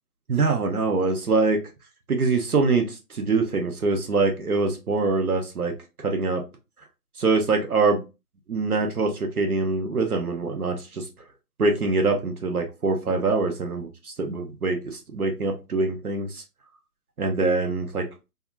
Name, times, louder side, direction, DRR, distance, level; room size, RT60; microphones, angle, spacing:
voice 1, 0.3-1.6 2.1-5.7 6.0-6.4 7.2-8.0 8.5-11.0 11.6-16.4 17.2-18.0, right 3 dB, 65° right, 3 dB, 0.7 m, -24 dB
2.8 x 2.3 x 2.4 m, 0.27 s
figure-of-eight pair, 160°, 49 cm